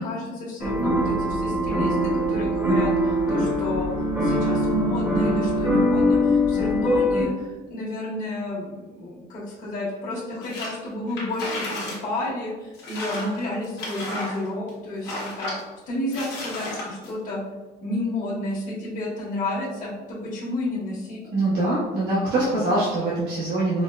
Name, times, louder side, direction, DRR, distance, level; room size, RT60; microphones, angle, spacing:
voice 1, 0.0-3.9 4.2-15.5 15.9-17.4 17.8-21.2, left 1 dB, 50° left, -8 dB, 1.2 m, -31 dB
sound 1, 0.6-7.2, equal, 5° right, 0.7 m, -22 dB
sound 2, 10.4-10.8 11.1-12.0 12.3-12.4 12.7-14.7 15.0-15.6 16.1-17.1, left 1 dB, 80° left, 1.2 m, -33 dB
voice 2, 21.3-23.8, right 2 dB, 85° right, -8 dB, 0.8 m, -23 dB
4.3 x 2.0 x 2.3 m, 1.2 s
cardioid pair, 110°, 17 cm